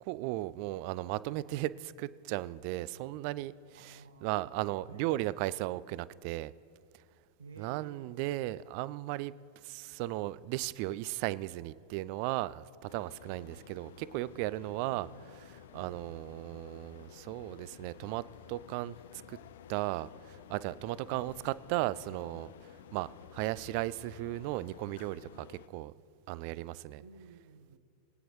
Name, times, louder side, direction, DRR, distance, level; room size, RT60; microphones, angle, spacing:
voice 1, 0.0-6.5 7.6-9.3 9.6-15.1 15.5-19.4 19.7-22.5 22.9-25.9 26.3-27.0, right 17 dB, 45° right, 19 dB, 0.3 m, -36 dB
voice 2, 3.7-5.3 7.4-8.1 13.4-13.6 14.8-15.3 15.7-16.0 27.0-27.8, right 5 dB, 70° right, 5 dB, 0.7 m, -53 dB
sound 1, 12.9-25.7, left 10 dB, 60° left, 0.3 m, -53 dB
23.5 x 9.3 x 3.1 m, 2.3 s
figure-of-eight pair, 90°, 0 cm